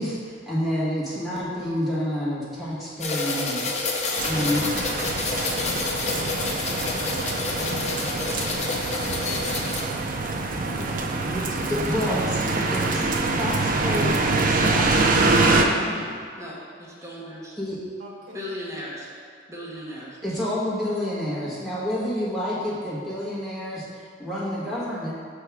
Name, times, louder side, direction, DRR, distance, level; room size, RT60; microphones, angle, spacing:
voice 1, 0.0-3.7 4.2-4.7 10.8-10.9 11.2-13.1 13.4-16.1 17.6-17.8 20.2-25.1, left 1 dB, ahead, -9 dB, 1.3 m, -29 dB
sound 1, 3.0-9.8, left 3 dB, 35° left, 0.6 m, -28 dB
voice 2, 3.7-4.1 4.5-7.9 18.0-18.4, equal, 85° right, -3 dB, 1.3 m, -42 dB
sound 2, 4.2-15.6, right 3 dB, 45° right, 0.5 m, -25 dB
voice 3, 16.4-17.5 18.3-19.1 19.5-20.2, equal, 15° right, -6 dB, 1.0 m, -37 dB
5.5 x 3.5 x 5.8 m, 2.2 s
head